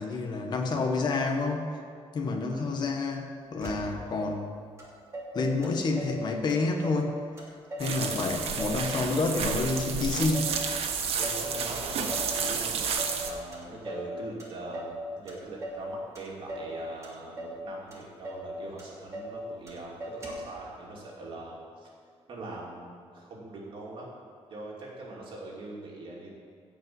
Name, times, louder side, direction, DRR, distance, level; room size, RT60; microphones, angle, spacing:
voice 1, 0.0-1.7 2.1-4.5 5.3-7.2 7.8-10.5, left 3 dB, 45° left, 2 dB, 1.4 m, -29 dB
Motor vehicle (road), 3.6-4.3 4.8-4.9 5.1-6.2 6.5-7.1 7.4-8.0 8.2-9.7 10.0-10.6 10.9-11.5 11.8-12.3 12.6-13.2 13.5-14.1 14.4-15.0 15.3-15.9 16.1-16.7 17.0-17.6 17.9-18.0 18.2-18.5 18.8-19.4 19.7-19.8 20.0-20.5, right 1 dB, 30° right, 2.8 m, -39 dB
sound 1, 7.8-13.3, right 6 dB, 70° right, 1.4 m, -31 dB
voice 2, 11.2-12.8 13.2-21.9 22.3-24.1 24.5-26.3, right 2 dB, 50° right, -4 dB, 2.7 m, -42 dB
16.5 x 5.5 x 7.8 m, 2.3 s
cardioid pair, 155°, 11 cm